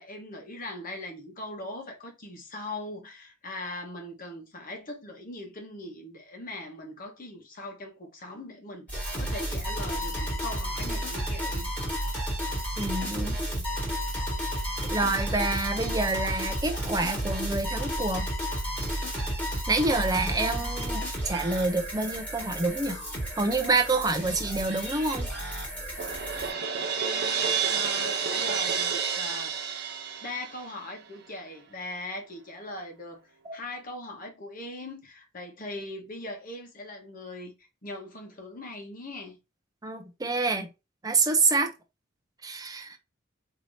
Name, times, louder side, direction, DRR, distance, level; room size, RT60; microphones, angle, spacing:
voice 1, 0.0-11.7 26.9-29.5 30.2-33.2 33.5-39.4, left 2 dB, 45° left, 1.1 m, -40 dB
sound 1, 8.9-26.5, equal, 10° left, 1.7 m, -32 dB
voice 2, 12.8-13.4 14.9-18.3 19.7-23.0 23.4-25.3 33.5-33.6 39.8-40.7 41.0-41.7 42.4-43.0, right 3 dB, 20° right, 0.6 m, -27 dB
Crash cymbal, 26.0-30.9, right 6 dB, 50° right, 0.7 m, -29 dB
4.7 x 2.9 x 2.6 m
head